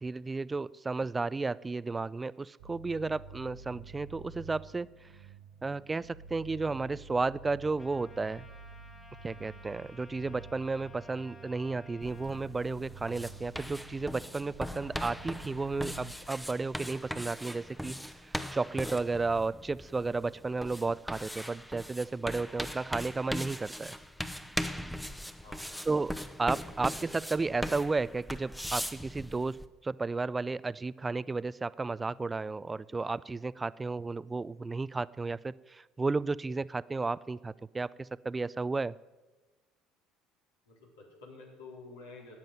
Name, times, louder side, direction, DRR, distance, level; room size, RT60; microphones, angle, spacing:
voice 1, 0.0-4.9 5.6-8.5 9.2-24.0 25.9-26.1 26.4-29.6 29.8-39.0, right 3 dB, 20° right, 20 dB, 0.4 m, -33 dB
sound 1, 2.6-16.1, right 4 dB, 70° right, 0.9 m, -50 dB
Trumpet, 7.8-12.4, left 2 dB, 25° left, 2.4 m, -55 dB
sound 2, 12.0-29.7, equal, ahead, 0.9 m, -40 dB
voice 2, 25.4-25.8 40.7-42.4, left 3 dB, 80° left, -2 dB, 3.9 m, -50 dB
13.0 x 9.1 x 7.8 m, 1.2 s
hypercardioid pair, 65°, 0 cm